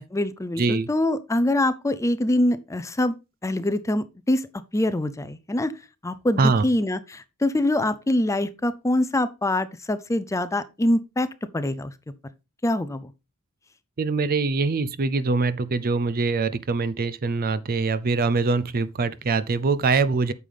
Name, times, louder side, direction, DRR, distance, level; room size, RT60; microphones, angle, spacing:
voice 1, 0.0-3.1 3.4-4.5 4.7-5.7 6.0-11.3 11.5-11.9 12.6-13.1, left 1 dB, 15° left, 0.5 m, -24 dB
voice 2, 0.6-0.9 6.4-6.6 14.0-20.3, right 4 dB, 40° right, 0.5 m, -23 dB
9.1 x 6.6 x 3.4 m
head